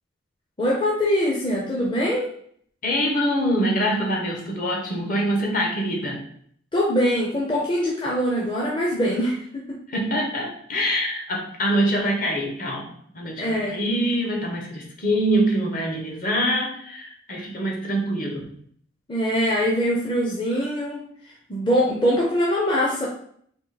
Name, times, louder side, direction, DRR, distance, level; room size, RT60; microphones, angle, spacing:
voice 1, 0.6-2.3 6.7-9.8 13.4-13.8 19.1-21.0 21.5-23.1, equal, 25° left, -4 dB, 0.6 m, -23 dB
voice 2, 2.8-6.2 9.9-18.5, equal, 45° left, 1 dB, 0.8 m, -24 dB
3.7 x 2.7 x 4.0 m, 0.63 s
head